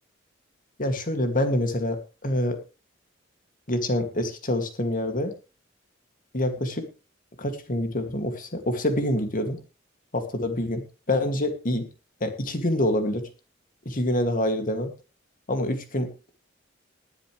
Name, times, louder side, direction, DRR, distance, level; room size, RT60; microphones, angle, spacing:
voice 1, 0.8-2.6 3.7-5.3 6.3-6.9 7.4-9.6 10.1-11.9 12.2-13.3 13.9-14.9 15.5-16.1, left 1 dB, 45° left, 7 dB, 2.4 m, -26 dB
19.5 x 9.8 x 3.3 m, 0.30 s
head